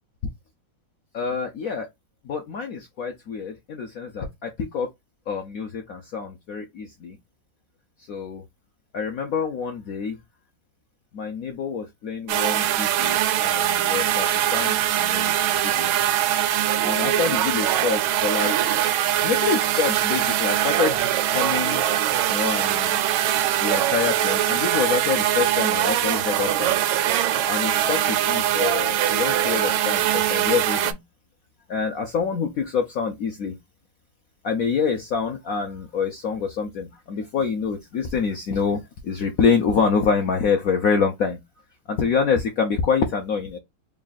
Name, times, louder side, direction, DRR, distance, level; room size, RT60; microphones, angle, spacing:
voice 1, 1.1-1.9 2.2-4.9 5.3-7.2 8.1-8.4 8.9-10.2 11.1-15.9 16.8-18.8 19.2-21.8 22.3-23.0 23.6-26.8 27.5-31.0 31.7-33.5 34.4-41.4 41.9-43.6, left 5 dB, 75° left, 0.8 m, -26 dB
sound 1, 12.3-30.9, right 12 dB, 80° right, 1.4 m, -22 dB
3.6 x 2.4 x 3.9 m
omnidirectional pair, 2.2 m